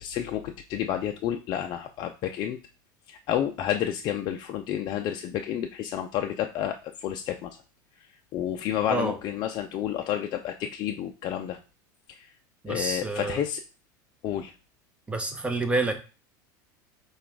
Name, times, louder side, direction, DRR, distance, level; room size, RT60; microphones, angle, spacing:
voice 1, 0.0-2.6 3.1-7.6 8.3-11.6 12.1-12.3 12.7-13.6 14.2-14.5, left 10 dB, 45° left, 5 dB, 0.4 m, -30 dB
voice 2, 12.6-13.4 15.1-15.9, right 2 dB, 10° right, 6 dB, 0.8 m, -28 dB
4.9 x 2.3 x 4.5 m, 0.33 s
supercardioid pair, 115°, 10 cm